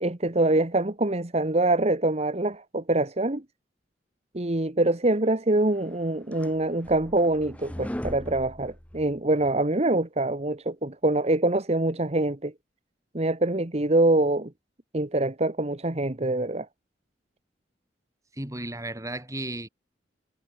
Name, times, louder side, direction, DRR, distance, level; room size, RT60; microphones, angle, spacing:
voice 1, 0.0-3.4 4.3-12.5 13.1-14.5 14.9-16.7, right 2 dB, 35° right, 1.4 m, -24 dB
sound 1, 5.8-9.5, equal, 10° left, 1.0 m, -39 dB
voice 2, 18.3-19.7, right 1 dB, 20° right, 3.3 m, -34 dB
head